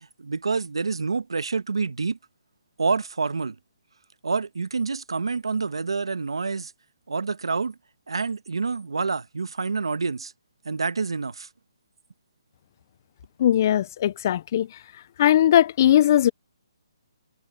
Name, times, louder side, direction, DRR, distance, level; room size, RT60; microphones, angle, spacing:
voice 1, 0.2-2.2 2.8-3.6 4.2-6.7 7.1-7.7 8.1-10.3 10.6-11.5, right 4 dB, 90° right, 1.3 m, -27 dB
voice 2, 13.4-14.7 15.2-16.3, left 11 dB, 40° left, 0.6 m, -19 dB
hypercardioid pair, 155°, 3 cm